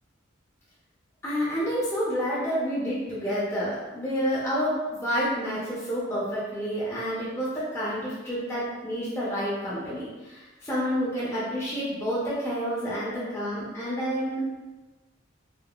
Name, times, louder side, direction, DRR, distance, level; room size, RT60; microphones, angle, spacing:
voice 1, 1.2-14.4, equal, 15° left, -9 dB, 0.6 m, -29 dB
3.5 x 2.1 x 2.3 m, 1.2 s
head